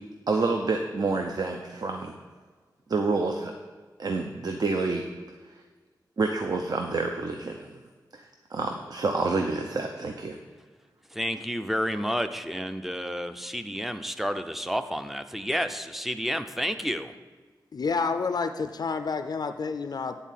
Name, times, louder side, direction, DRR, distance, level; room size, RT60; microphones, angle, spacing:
voice 1, 0.3-2.1 2.9-3.5 4.0-5.0 5.5-5.6 6.2-7.7 8.1-8.2 8.5-10.4, right 3 dB, 60° right, 4 dB, 0.6 m, -28 dB
voice 2, 11.1-17.1, equal, 5° right, 9 dB, 0.4 m, -30 dB
voice 3, 17.7-20.2, left 4 dB, 60° left, 8 dB, 0.4 m, -29 dB
10.0 x 4.1 x 7.4 m, 1.4 s
wide cardioid pair, 115°, 8 cm